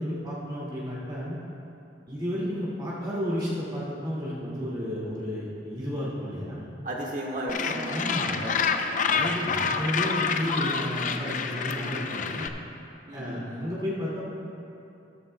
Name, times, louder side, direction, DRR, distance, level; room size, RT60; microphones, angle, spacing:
voice 1, 0.0-1.4 2.1-6.7 7.9-8.4 9.1-12.5 13.1-14.2, equal, 25° right, -8 dB, 2.1 m, -32 dB
voice 2, 6.8-8.9 13.1-13.7, right 1 dB, 45° right, -2 dB, 1.6 m, -35 dB
Gull seagull, 7.5-12.5, left 5 dB, 45° left, 0.5 m, -28 dB
14.0 x 13.0 x 2.2 m, 2.8 s
head